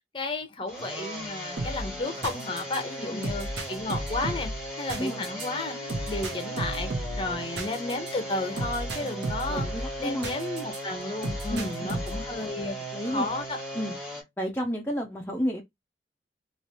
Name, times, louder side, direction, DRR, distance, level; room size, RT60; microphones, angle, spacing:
voice 1, 0.1-4.5 4.8-5.8 6.1-6.9 7.2-9.6 10.0-12.8 13.0-13.6, left 2 dB, 30° left, 0.8 m, -32 dB
sound 1, 0.7-14.2, right 1 dB, 5° right, 1.2 m, -38 dB
sound 2, 1.6-10.8 11.2-12.3, right 1 dB, 80° right, 1.1 m, -35 dB
voice 2, 4.9-5.3 9.0-9.2 9.5-10.3 11.5-12.0 12.9-13.3 13.7-15.6, equal, 10° left, 0.4 m, -32 dB
3.2 x 3.0 x 2.8 m
head